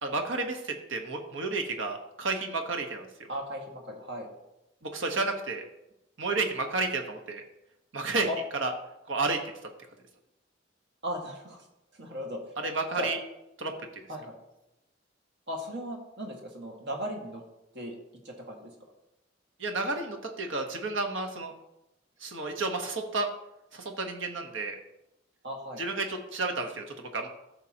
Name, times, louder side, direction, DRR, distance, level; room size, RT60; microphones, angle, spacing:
voice 1, 0.0-3.1 4.8-5.6 6.2-7.4 7.9-8.3 8.6-8.7 9.1-9.4 12.6-13.2 13.6-14.0 19.6-21.5 22.2-23.3 23.7-24.8 25.8-27.3, right 3 dB, 80° right, 4 dB, 1.3 m, -31 dB
voice 2, 3.3-4.3 8.3-8.4 11.0-11.6 12.0-12.4 13.0-13.1 14.1-14.3 15.5-17.4 17.7-18.0 18.2-18.7 25.4-25.8, equal, 60° right, 0 dB, 1.9 m, -36 dB
14.0 x 5.9 x 2.9 m, 0.91 s
head